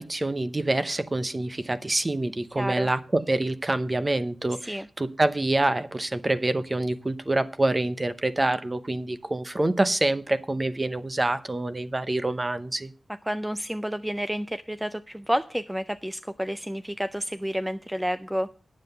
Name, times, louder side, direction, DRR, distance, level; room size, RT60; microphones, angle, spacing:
voice 1, 0.0-12.9, right 2 dB, 30° right, 12 dB, 0.8 m, -26 dB
voice 2, 2.6-2.9 4.6-4.9 13.3-18.5, equal, 10° right, 11 dB, 0.4 m, -30 dB
9.7 x 7.6 x 6.7 m, 0.40 s
wide cardioid pair, 80°, 0 cm